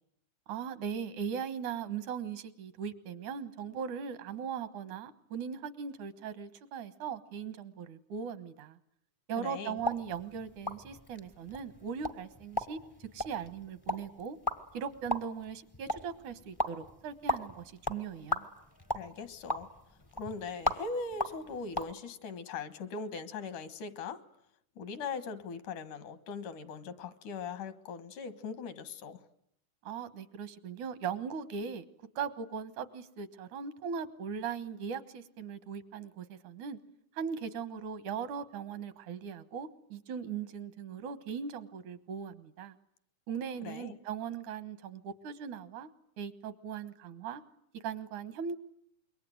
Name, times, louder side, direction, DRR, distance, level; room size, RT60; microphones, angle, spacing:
voice 1, 0.5-8.8 9.3-14.4 14.7-18.5 29.9-31.9 32.2-36.8 37.2-42.8 43.3-45.9 46.2-47.4 47.7-48.6, right 7 dB, 75° right, 13 dB, 2.8 m, -39 dB
voice 2, 9.4-9.8 18.9-19.7 20.1-24.2 24.8-29.2 43.6-44.0, left 4 dB, 80° left, 12 dB, 3.1 m, -40 dB
sound 1, 9.8-21.9, equal, 30° left, 0.4 m, -38 dB
27.0 x 23.0 x 9.4 m, 0.73 s
omnidirectional pair, 3.5 m